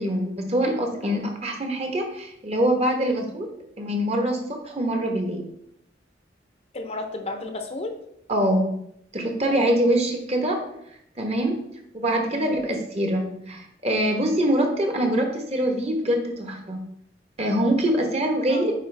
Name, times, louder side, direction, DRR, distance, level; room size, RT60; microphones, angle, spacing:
voice 1, 0.0-3.5 3.8-5.5 8.3-8.8 9.1-10.6 11.2-11.6 11.9-16.9 17.4-18.8, right 1 dB, 35° right, 3 dB, 1.1 m, -24 dB
voice 2, 6.7-8.0 9.5-9.8 12.3-12.6 18.5-18.8, left 2 dB, 35° left, 5 dB, 0.7 m, -33 dB
9.1 x 4.4 x 3.3 m, 0.75 s
head